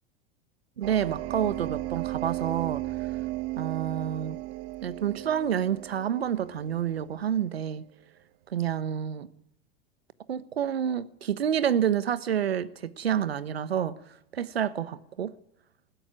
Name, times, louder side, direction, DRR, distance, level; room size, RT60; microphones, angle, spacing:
sound 1, 0.8-7.3, right 18 dB, 50° right, 1.5 m, -35 dB
voice 1, 0.8-2.8 3.6-4.4 4.8-7.8 8.5-9.3 10.3-14.0 14.3-15.3, right 9 dB, 90° right, 1.2 m, -28 dB
21.0 x 15.5 x 9.9 m
hypercardioid pair, 95°, 30 cm